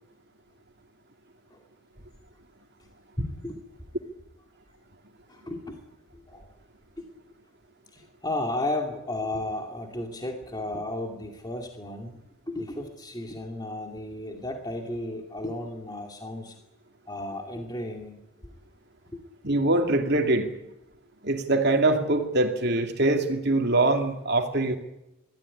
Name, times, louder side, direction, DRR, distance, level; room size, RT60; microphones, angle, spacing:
voice 1, 3.2-3.6 5.3-5.8 6.1-6.5 7.0-7.1 7.9-12.2 12.5-16.6 17.1-18.5 19.1-19.2, left 1 dB, 20° left, 3 dB, 2.4 m, -34 dB
voice 2, 19.4-20.5 21.2-24.8, right 2 dB, 50° right, 4 dB, 2.5 m, -23 dB
23.0 x 15.0 x 9.9 m, 0.91 s
head